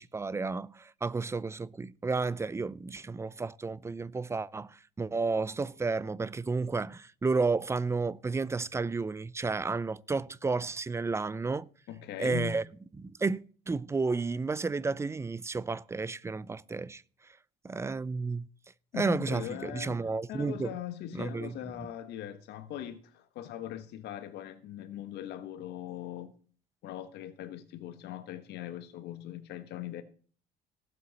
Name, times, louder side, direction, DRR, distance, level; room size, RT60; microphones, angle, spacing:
voice 1, 0.0-11.7 12.2-12.6 13.0-17.0 17.6-18.5 18.9-20.8 21.1-21.5, right 4 dB, 15° right, 0.4 m, -32 dB
voice 2, 11.9-12.6 18.9-26.3 26.8-30.0, left 12 dB, 80° left, 1.3 m, -40 dB
17.5 x 7.6 x 4.1 m
cardioid pair, 110°, 17 cm